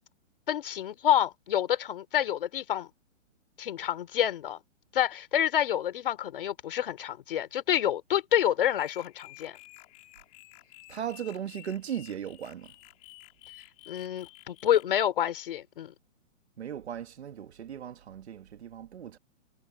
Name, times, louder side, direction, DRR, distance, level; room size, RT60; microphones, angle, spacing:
voice 1, 0.5-2.9 3.6-4.6 4.9-9.6 13.9-15.9, left 10 dB, 45° left, 3.4 m, -28 dB
sound 1, 8.7-15.0, left 21 dB, 20° left, 4.1 m, -52 dB
voice 2, 10.9-12.7 16.6-19.2, right 9 dB, 55° right, 2.0 m, -37 dB
hypercardioid pair, 175°, 38 cm